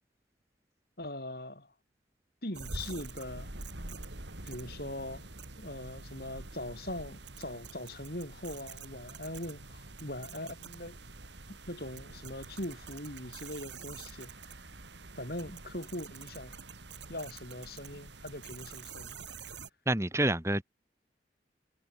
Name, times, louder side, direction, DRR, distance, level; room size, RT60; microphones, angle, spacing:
voice 1, 1.0-1.7 2.4-3.5 4.4-5.3 5.6-11.0 11.5-14.3 15.2-16.5 17.1-19.1, left 1 dB, 55° left, 7.7 m, -41 dB
sound 1, 2.5-19.7, right 3 dB, 70° right, 3.5 m, -46 dB
voice 2, 19.9-20.6, right 1 dB, 15° right, 1.7 m, -28 dB
head